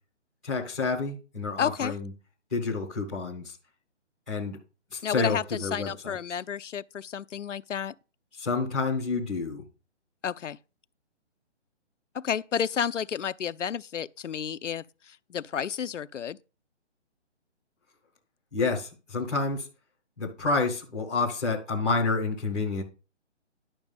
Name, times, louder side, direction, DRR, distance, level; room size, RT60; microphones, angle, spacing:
voice 1, 0.4-2.1 2.5-3.5 4.3-4.6 4.9-6.2 8.4-9.6 18.5-19.7 20.2-22.8, left 4 dB, ahead, 0.6 m, -29 dB
voice 2, 1.6-1.9 5.0-7.9 10.2-10.6 12.1-16.4, left 8 dB, 85° left, 0.7 m, -31 dB
11.0 x 6.2 x 5.3 m
hypercardioid pair, 170°, 36 cm